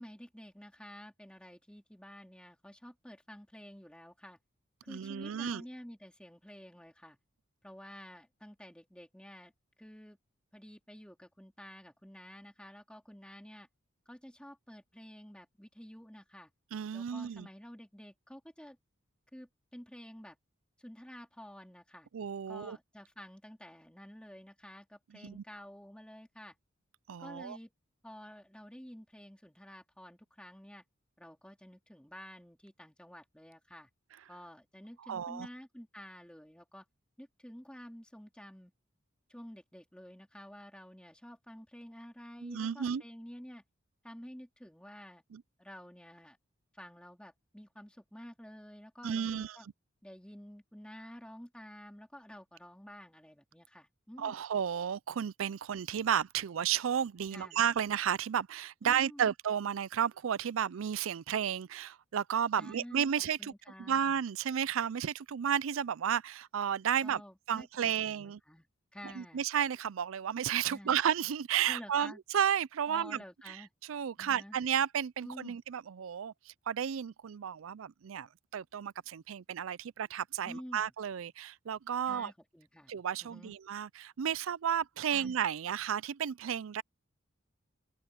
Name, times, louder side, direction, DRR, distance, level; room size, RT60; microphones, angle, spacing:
voice 1, 0.0-4.4 4.8-7.2 7.6-9.5 9.8-10.2 10.5-13.7 14.0-16.5 16.9-18.8 19.3-20.3 20.8-22.1 22.5-26.5 27.2-27.7 28.0-30.8 31.2-33.9 34.3-36.8 37.2-38.7 39.3-43.6 44.0-45.2 45.6-46.4 46.7-49.7 50.0-54.4 57.3-57.6 58.8-59.3 62.6-63.1 63.4-64.1 67.0-68.7 68.9-69.4 70.7-71.0 71.6-72.2 72.9-73.7 74.2-74.6 75.2-75.6 80.4-80.9 82.0-82.9 83.2-83.5 85.1-85.3, equal, 5° left, 3.3 m, -50 dB
voice 2, 4.9-5.6 16.7-17.5 22.1-22.8 25.2-25.4 27.1-27.6 35.0-35.5 42.4-43.0 45.3-45.4 49.0-49.6 54.2-63.5 63.8-67.2 67.5-68.4 69.2-73.2 73.5-73.6 73.8-78.3 78.5-82.3 82.9-86.8, right 8 dB, 75° right, 0.4 m, -33 dB
open air
head